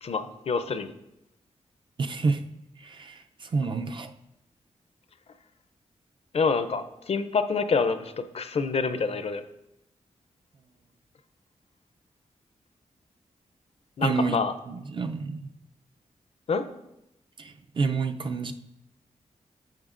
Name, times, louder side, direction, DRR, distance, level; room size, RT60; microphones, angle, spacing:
voice 1, 0.0-0.9 6.3-9.4 14.0-14.5 16.5-16.6, left 5 dB, 55° left, 11 dB, 0.5 m, -27 dB
voice 2, 2.0-2.4 2.8-4.1 14.0-14.4 14.7-15.5 17.4-18.5, right 4 dB, 40° right, 7 dB, 0.5 m, -28 dB
10.5 x 6.8 x 2.5 m, 0.88 s
wide cardioid pair, 105°, 12 cm